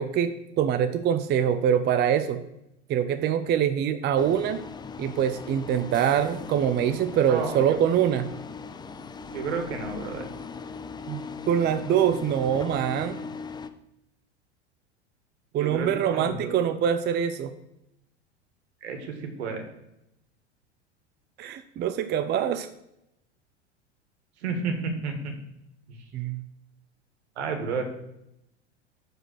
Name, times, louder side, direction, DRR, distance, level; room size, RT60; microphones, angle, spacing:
voice 1, 0.0-2.4 2.9-4.6 5.0-8.3 11.1-13.2 15.5-17.5 21.4-22.7 26.1-26.4, right 9 dB, 30° right, 10 dB, 0.6 m, -24 dB
sound 1, 4.2-13.7, left 5 dB, 15° left, 0.4 m, -39 dB
voice 2, 7.3-7.8 9.3-10.3 15.6-16.7 18.8-19.6 24.4-25.3 25.9-26.0 27.4-27.8, right 4 dB, 70° right, 5 dB, 1.7 m, -31 dB
6.1 x 5.0 x 6.4 m, 0.84 s
hypercardioid pair, 90°, 34 cm